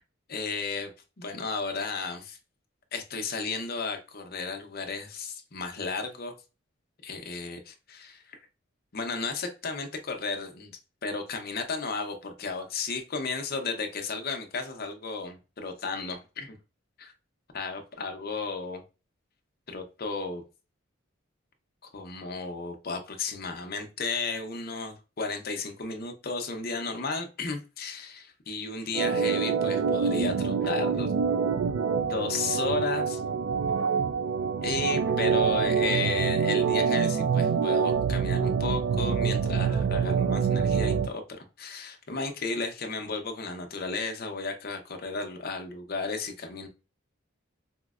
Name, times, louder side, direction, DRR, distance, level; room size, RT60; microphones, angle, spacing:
voice 1, 0.3-0.9 1.2-2.4 2.9-6.3 7.0-8.4 8.9-10.7 11.0-16.6 17.0-17.1 17.5-18.8 19.7-20.4 21.9-31.1 32.0-33.2 34.6-46.7, left 4 dB, 50° left, 5 dB, 0.6 m, -34 dB
Organ, 28.9-41.1, right 6 dB, 75° right, 0.3 m, -26 dB
4.4 x 2.0 x 2.3 m, 0.30 s
head